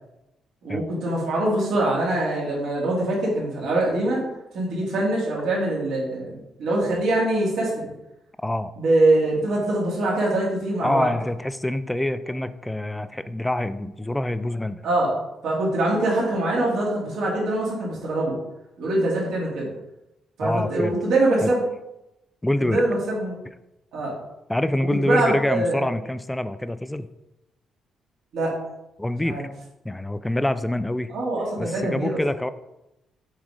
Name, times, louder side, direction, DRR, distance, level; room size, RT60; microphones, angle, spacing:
voice 1, 0.6-4.2 4.5-7.9 8.8-11.1 14.8-18.3 18.8-19.7 20.4-21.6 22.6-23.4 23.9-24.1 25.0-25.8 28.3-28.5 29.2-29.4 31.1-32.2, right 2 dB, 75° right, -4 dB, 2.5 m, -23 dB
voice 2, 8.4-8.7 10.8-14.8 20.4-20.9 21.4-21.5 22.4-22.8 24.5-27.1 29.0-29.5 29.8-31.1 31.6-32.5, left 1 dB, 10° left, 12 dB, 0.4 m, -26 dB
7.3 x 3.7 x 4.9 m, 0.91 s
cardioid pair, 90°, 0 cm